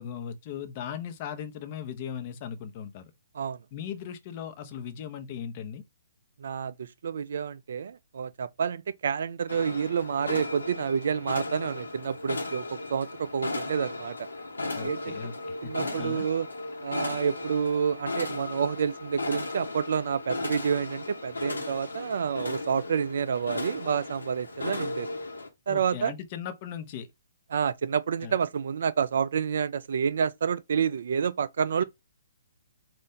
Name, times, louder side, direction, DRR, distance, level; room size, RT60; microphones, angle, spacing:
voice 1, 0.0-3.1 3.7-5.8 14.7-16.2 25.7-27.1 28.2-28.4, left 8 dB, 35° left, 0.8 m, -38 dB
voice 2, 6.4-14.3 14.8-15.1 15.6-16.5 16.8-25.1 25.7-26.1 27.5-31.8, right 7 dB, 55° right, 0.3 m, -29 dB
sound 1, 9.5-25.5, left 2 dB, 70° left, 1.2 m, -36 dB
4.2 x 2.6 x 3.7 m
figure-of-eight pair, 125°, 0 cm